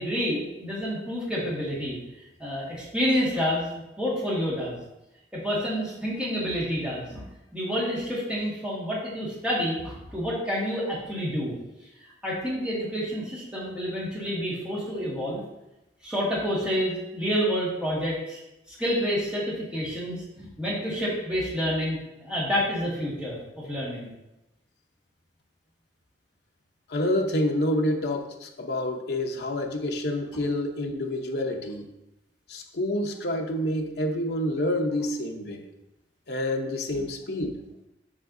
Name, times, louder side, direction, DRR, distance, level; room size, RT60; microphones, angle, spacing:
voice 1, 0.0-2.0 2.4-3.7 4.0-4.8 5.3-7.2 7.5-11.5 12.0-15.4 16.0-18.4 18.7-24.1 36.9-37.0, equal, 5° right, -7 dB, 1.8 m, -29 dB
voice 2, 26.9-31.9 32.5-35.6 36.3-37.5, left 1 dB, 60° left, 2 dB, 0.8 m, -28 dB
7.4 x 5.8 x 2.7 m, 0.92 s
head